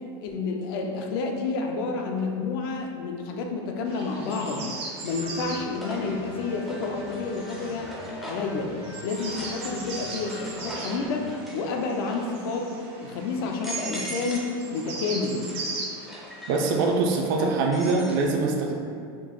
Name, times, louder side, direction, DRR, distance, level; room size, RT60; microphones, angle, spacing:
voice 1, 0.2-4.7 5.0-7.9 8.2-8.7 9.0-12.7 13.0-15.4, left 4 dB, 60° left, 2 dB, 0.5 m, -29 dB
sound 1, 2.2-2.3 4.0-4.4 4.8-8.6 9.1-11.7 12.0-12.5 13.1-13.2 13.5-14.6 14.9-18.2, right 1 dB, ahead, 0.5 m, -40 dB
sound 2, 3.8-17.0, right 3 dB, 75° right, 1.1 m, -40 dB
sound 3, 5.1-11.3, left 2 dB, 85° left, 1.1 m, -43 dB
voice 2, 16.5-18.7, right 3 dB, 55° right, 1 dB, 0.5 m, -23 dB
3.8 x 2.7 x 3.8 m, 2.4 s
supercardioid pair, 170°, 13 cm